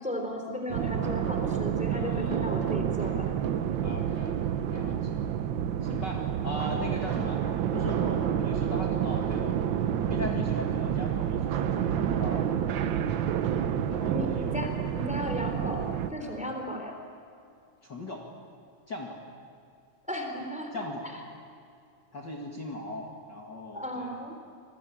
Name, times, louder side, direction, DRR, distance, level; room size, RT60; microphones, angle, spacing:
voice 1, 0.0-3.3 14.1-14.7 15.0-15.8 16.1-17.0 20.1-20.8 23.7-24.3, equal, ahead, 3 dB, 3.6 m, -35 dB
sound 1, 0.7-16.1, right 9 dB, 80° right, 1.0 m, -29 dB
voice 2, 1.9-2.6 3.8-5.2 5.8-7.4 7.7-9.6 10.0-12.6 13.0-13.1 13.9-14.6 16.2-16.5 17.8-18.3 18.9-19.2 20.7-21.1 22.1-24.2, left 2 dB, 40° left, -1 dB, 2.6 m, -39 dB
28.0 x 21.5 x 8.8 m, 2.4 s
omnidirectional pair, 3.3 m